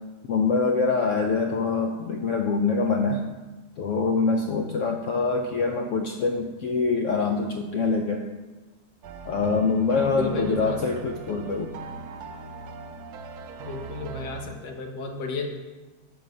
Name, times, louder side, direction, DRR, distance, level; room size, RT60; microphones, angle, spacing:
voice 1, 0.3-3.2 3.8-8.2 9.3-11.7, left 4 dB, 70° left, 3 dB, 0.8 m, -24 dB
sound 1, 9.0-14.5, right 5 dB, 80° right, 1.1 m, -40 dB
voice 2, 9.9-10.8 13.6-15.4, left 4 dB, 85° left, 2 dB, 1.5 m, -32 dB
6.1 x 4.8 x 5.2 m, 1.2 s
omnidirectional pair, 1.7 m